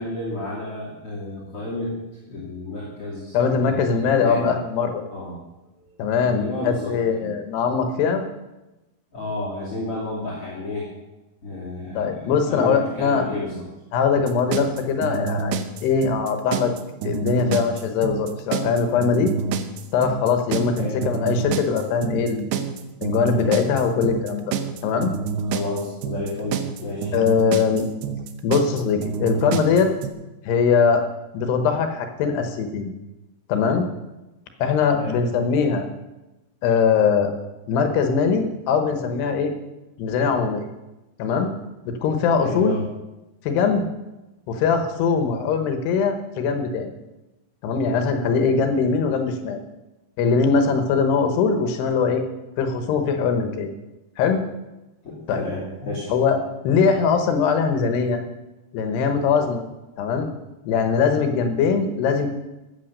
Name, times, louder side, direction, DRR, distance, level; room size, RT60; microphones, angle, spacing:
voice 1, 0.0-2.0 2.3-3.4 3.6-4.5 5.1-5.4 5.8-7.3 9.1-10.9 11.4-13.6 20.6-21.0 25.5-27.1 34.9-35.2 42.4-42.8 55.0-56.1, left 2 dB, 35° left, -5 dB, 3.3 m, -31 dB
voice 2, 3.3-5.0 6.0-8.2 12.0-13.3 13.9-16.7 17.0-19.3 19.9-22.5 23.0-24.5 24.8-25.1 27.1-27.8 28.4-29.9 30.4-31.1 31.3-32.9 33.5-33.9 34.6-35.9 36.6-37.3 37.7-39.5 40.0-40.7 41.2-41.5 41.9-42.8 43.5-43.9 44.5-46.9 47.6-49.6 50.2-52.2 52.6-53.7 54.2-54.4 55.3-55.5 56.1-56.4 56.6-58.2 58.7-59.6 60.0-60.3 60.7-62.3, left 5 dB, 75° left, 6 dB, 3.2 m, -21 dB
sound 1, 14.2-30.1, right 6 dB, 75° right, 2.8 m, -27 dB
14.0 x 9.0 x 6.6 m, 1.0 s
omnidirectional pair, 5.0 m